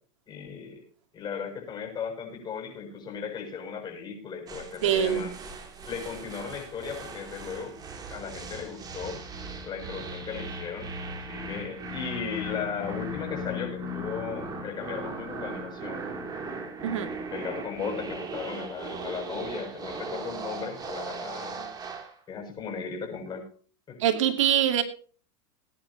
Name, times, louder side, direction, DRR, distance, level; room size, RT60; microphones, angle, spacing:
voice 1, 0.3-0.8 1.1-5.3 5.9-7.8 8.1-9.2 9.6-16.0 17.3-21.7 22.3-23.4 23.9-24.0, left 6 dB, 25° left, 2 dB, 7.3 m, -36 dB
sound 1, 4.5-22.2, right 2 dB, 25° right, 3.0 m, -38 dB
voice 2, 4.8-5.3 16.8-17.1 24.0-24.8, right 10 dB, 85° right, 8 dB, 2.4 m, -24 dB
21.5 x 10.5 x 2.9 m, 0.40 s
supercardioid pair, 130°, 16 cm